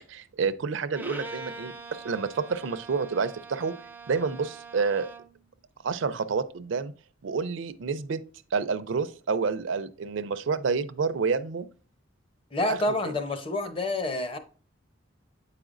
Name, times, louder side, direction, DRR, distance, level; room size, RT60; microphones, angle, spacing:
voice 1, 0.1-1.7 2.0-3.7 4.1-5.1 5.8-6.9 7.2-8.2 8.5-11.7 12.7-12.8, right 5 dB, 70° right, 0.4 m, -28 dB
Bowed string instrument, 0.9-5.4, right 3 dB, 10° right, 0.4 m, -43 dB
voice 2, 12.5-14.4, left 2 dB, 25° left, 0.7 m, -28 dB
8.5 x 4.9 x 2.5 m
head